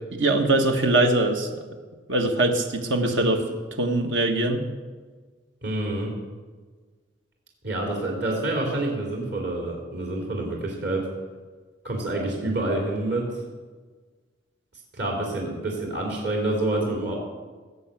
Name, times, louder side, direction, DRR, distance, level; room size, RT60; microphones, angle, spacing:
voice 1, 0.2-1.5 2.1-3.4 3.8-4.6, right 2 dB, 80° right, 4 dB, 1.5 m, -22 dB
voice 2, 3.0-3.4 5.6-6.1 7.6-11.1 11.8-13.2 14.9-17.2, right 2 dB, 60° right, -1 dB, 3.0 m, -27 dB
18.0 x 7.0 x 8.5 m, 1.4 s
head